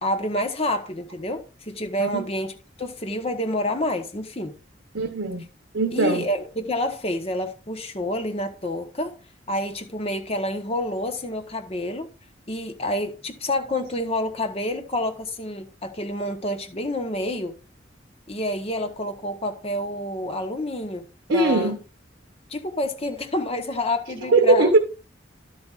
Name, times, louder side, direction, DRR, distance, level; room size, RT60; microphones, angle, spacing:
voice 1, 0.0-2.5 2.8-4.5 5.9-9.2 9.5-12.1 12.5-17.6 18.3-21.1 21.3-21.7 22.5-24.7, left 1 dB, 30° left, 1.0 m, -28 dB
voice 2, 4.9-5.5 5.7-6.2 21.3-21.8 24.3-24.8, right 3 dB, 85° right, 0.9 m, -20 dB
11.5 x 8.2 x 2.5 m
head